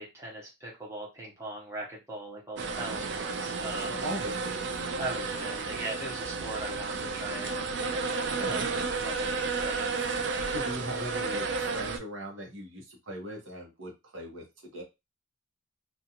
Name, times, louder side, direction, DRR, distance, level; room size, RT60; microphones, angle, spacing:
voice 1, 0.0-4.0 5.0-9.9, right 1 dB, 15° right, -5 dB, 0.8 m, -40 dB
sound 1, 2.6-12.0, right 4 dB, 60° right, 0.4 m, -32 dB
voice 2, 3.9-4.8 8.4-8.7 10.5-14.8, equal, 80° right, -1 dB, 1.0 m, -39 dB
2.4 x 2.4 x 2.8 m, 0.24 s
head